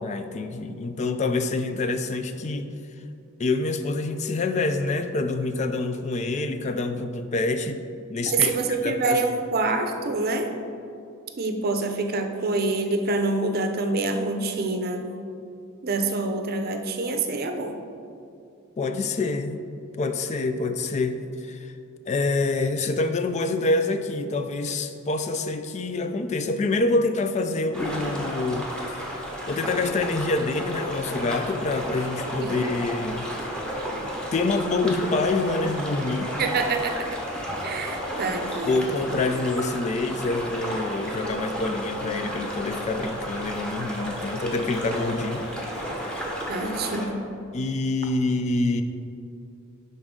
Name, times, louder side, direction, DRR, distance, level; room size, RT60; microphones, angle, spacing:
voice 1, 0.0-2.7 3.4-7.8 8.1-8.6 8.8-9.2 18.8-19.6 20.0-21.7 22.1-29.1 29.5-33.3 34.3-36.4 38.7-45.5 46.0-46.2 47.5-48.8, left 3 dB, 35° left, 7 dB, 0.4 m, -26 dB
voice 2, 8.3-10.5 11.4-15.1 15.8-17.8 32.4-32.6 36.4-37.1 37.6-38.8 46.5-47.2, right 3 dB, 50° right, 5 dB, 0.6 m, -26 dB
sound 1, 27.7-47.1, equal, 5° left, 1.0 m, -32 dB
11.0 x 4.1 x 3.7 m, 2.5 s
head